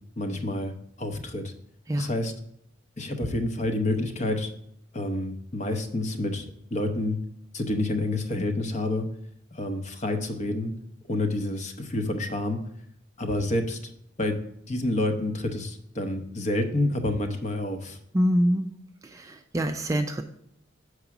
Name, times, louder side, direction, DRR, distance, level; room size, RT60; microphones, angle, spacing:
voice 1, 0.2-1.5 2.0-2.3 3.0-4.5 4.9-6.5 6.7-7.2 7.5-9.0 9.5-10.7 11.1-12.6 13.2-13.9 14.2-14.4 14.7-18.0, left 2 dB, 35° left, 6 dB, 0.8 m, -28 dB
voice 2, 18.1-18.7 19.0-20.2, equal, 15° right, 6 dB, 0.3 m, -25 dB
6.8 x 4.8 x 5.9 m, 0.74 s
head